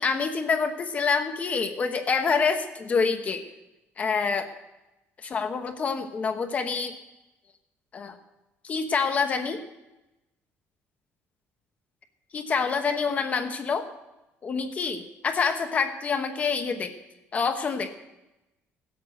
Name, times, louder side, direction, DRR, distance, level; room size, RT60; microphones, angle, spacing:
voice 1, 0.0-3.4 4.0-4.5 5.2-6.9 7.9-8.2 8.6-9.6 12.3-13.9 14.4-16.9 17.3-17.9, left 5 dB, 30° left, 6 dB, 1.1 m, -26 dB
16.5 x 8.2 x 6.5 m, 0.97 s
cardioid pair, 155°, 5 cm